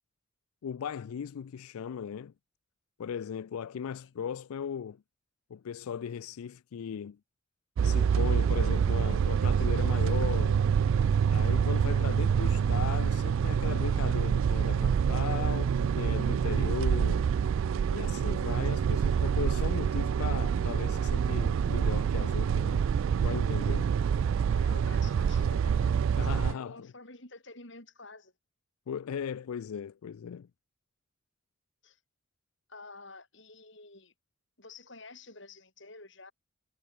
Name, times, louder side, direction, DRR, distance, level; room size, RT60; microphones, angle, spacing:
voice 1, 0.6-2.3 3.0-5.0 5.5-7.2 7.8-10.6 11.3-17.3 17.9-22.9 23.2-23.9 26.2-26.9 28.9-30.5, left 7 dB, 90° left, 0.4 m, -37 dB
sound 1, 7.8-26.5, right 7 dB, 70° right, 0.3 m, -26 dB
voice 2, 24.5-25.9 26.5-28.3 31.8-32.0 32.7-34.1 34.6-36.3, left 3 dB, 55° left, 5.1 m, -50 dB
head